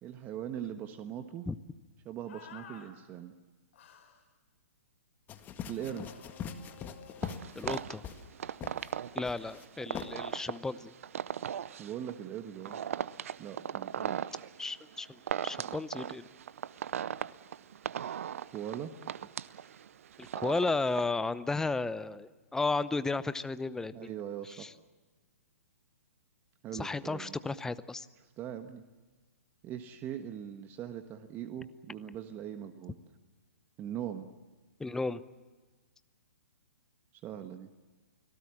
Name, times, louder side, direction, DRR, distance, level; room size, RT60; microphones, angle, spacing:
voice 1, 0.0-1.5 2.0-3.3 5.7-6.1 11.8-12.8 13.4-14.5 18.5-19.0 23.9-24.7 26.6-27.4 28.4-28.8 29.6-33.0 33.8-34.3 37.2-37.7, right 10 dB, 25° right, 7 dB, 1.4 m, -41 dB
sound 1, 2.3-2.9 3.7-4.2 5.7-8.0, left 7 dB, 55° left, 5.3 m, -53 dB
sound 2, 5.3-8.3 8.6-8.9 9.2-9.6 9.9-10.1, left 7 dB, 20° left, 1.8 m, -41 dB
sound 3, 7.2-21.0, right 9 dB, 65° right, 0.8 m, -38 dB
voice 2, 7.5-8.0 9.1-10.9 14.6-16.2 20.2-24.1 24.5-24.7 26.7-28.1 34.8-35.2, left 3 dB, 5° left, 15 dB, 0.7 m, -34 dB
29.5 x 19.0 x 7.4 m, 1.3 s
hypercardioid pair, 125°, 8 cm